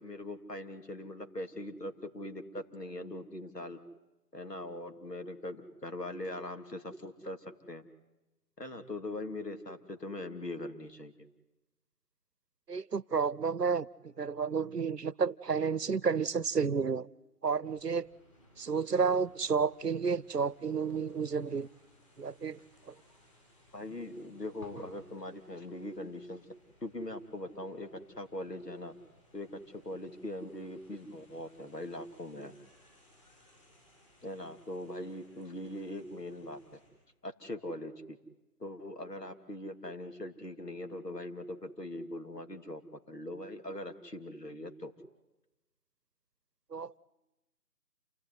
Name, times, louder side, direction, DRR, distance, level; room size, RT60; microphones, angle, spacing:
voice 1, 0.0-3.8 4.3-7.8 8.6-11.1 23.7-26.5 26.8-27.9 28.2-28.9 29.3-32.5 34.2-36.8 37.2-38.2 38.6-44.9, left 1 dB, 80° left, 7 dB, 3.1 m, -41 dB
voice 2, 12.7-17.1 17.4-18.1 18.6-21.7 22.2-22.6 46.7-47.0, right 5 dB, 80° right, 25 dB, 0.8 m, -31 dB
sound 1, 17.6-36.9, equal, 20° left, 6.6 m, -62 dB
28.5 x 15.5 x 9.8 m, 1.0 s
figure-of-eight pair, 165°, 48 cm